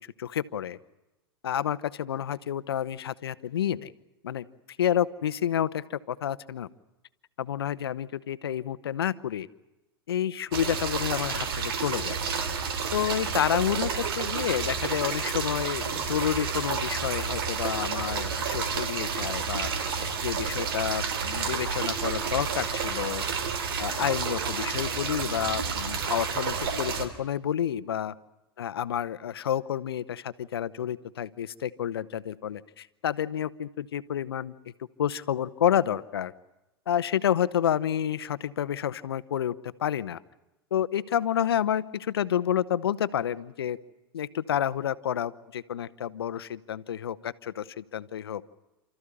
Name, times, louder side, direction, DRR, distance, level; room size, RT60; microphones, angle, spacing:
voice 1, 0.2-0.8 1.4-3.9 4.2-4.4 4.8-6.7 7.4-9.5 10.1-12.1 12.9-23.2 23.8-28.1 28.6-34.5 35.0-36.3 36.9-40.2 40.7-43.8 44.1-48.4, left 10 dB, 85° left, 15 dB, 1.0 m, -29 dB
sound 1, 10.5-27.1, right 6 dB, 75° right, 3.1 m, -30 dB
29.5 x 14.5 x 9.9 m, 0.97 s
hypercardioid pair, 100°, 12 cm